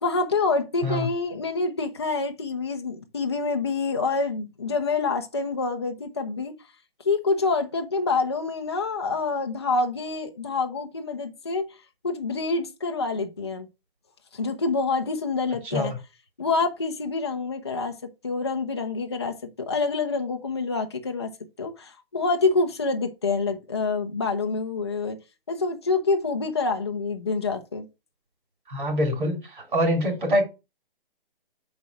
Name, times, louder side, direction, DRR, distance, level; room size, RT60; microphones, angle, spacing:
voice 1, 0.0-6.5 7.0-11.7 12.0-13.7 14.3-15.9 16.4-18.0 18.2-21.3 21.6-25.2 25.5-27.9, left 4 dB, 30° left, 0.5 m, -26 dB
voice 2, 28.7-30.4, equal, 55° right, 2.9 m, -24 dB
6.2 x 4.1 x 4.6 m
hypercardioid pair, 180°, 29 cm